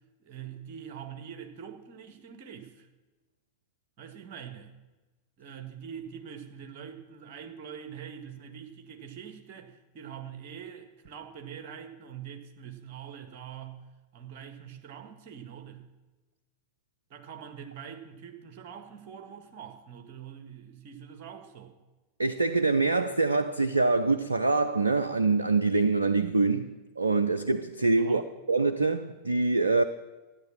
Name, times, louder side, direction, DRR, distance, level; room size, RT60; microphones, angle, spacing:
voice 1, 0.2-2.9 4.0-4.7 5.4-13.9 14.1-15.9 17.1-21.8 28.0-28.3, right 8 dB, 45° right, 1.7 m, -44 dB
voice 2, 22.2-26.7 27.0-28.2 28.5-29.8, right 3 dB, 80° right, 0.5 m, -25 dB
13.5 x 9.6 x 7.4 m
figure-of-eight pair, 90°, 0 cm